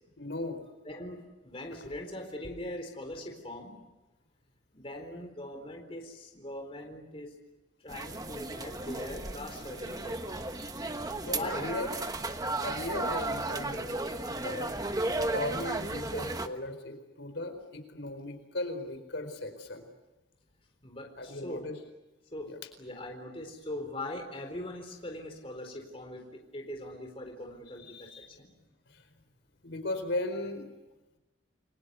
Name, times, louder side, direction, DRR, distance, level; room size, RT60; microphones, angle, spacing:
voice 1, 0.2-0.6 11.2-11.9 12.6-14.7 15.3-19.8 21.2-21.8 22.4-22.6 27.8-28.3 28.9-29.0 29.6-30.7, left 1 dB, 65° left, 8 dB, 4.4 m, -37 dB
voice 2, 0.8-3.7 4.7-7.3 7.8-11.8 20.8-21.7 22.3-28.5, left 1 dB, 30° left, 3 dB, 4.2 m, -41 dB
sound 1, 7.9-16.5, right 2 dB, 20° right, 1.2 m, -34 dB
29.5 x 23.0 x 8.3 m, 1.1 s
head